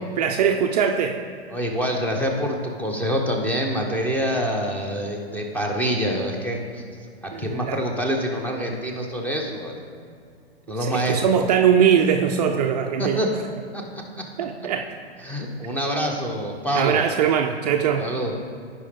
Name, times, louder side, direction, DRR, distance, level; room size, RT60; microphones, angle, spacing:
voice 1, 0.2-1.2 7.3-7.8 10.8-13.2 14.4-14.9 16.7-18.0, right 8 dB, 40° right, 4 dB, 0.5 m, -21 dB
voice 2, 1.5-6.8 7.2-9.7 10.7-11.2 13.0-13.3 13.7-13.8 15.2-17.0 18.0-18.3, equal, 5° left, 1 dB, 0.8 m, -26 dB
15.5 x 5.1 x 3.6 m, 2.2 s
figure-of-eight pair, 110°, 33 cm